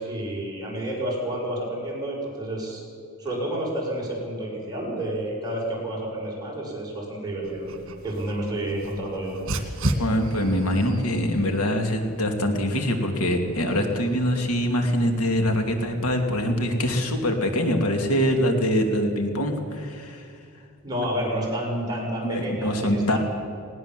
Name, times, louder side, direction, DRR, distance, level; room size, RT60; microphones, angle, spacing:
voice 1, 0.0-2.8 3.2-7.7 8.0-9.4 20.8-23.2, right 1 dB, 20° right, -3 dB, 6.2 m, -30 dB
Dog, 7.4-16.5, right 1 dB, 60° right, 2.1 m, -36 dB
voice 2, 10.0-20.3 22.2-23.2, equal, 85° left, 4 dB, 2.6 m, -24 dB
19.5 x 19.0 x 7.6 m, 2.5 s
head